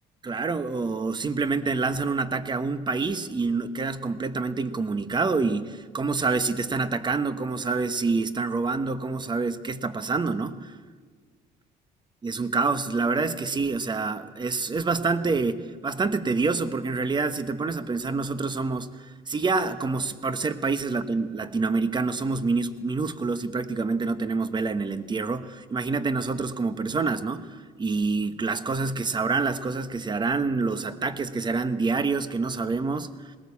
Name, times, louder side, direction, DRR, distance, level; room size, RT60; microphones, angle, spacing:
voice 1, 0.2-10.8 12.2-33.3, right 4 dB, 25° right, 11 dB, 1.2 m, -27 dB
20.0 x 18.5 x 8.5 m, 1.5 s
cardioid pair, 110°, 17 cm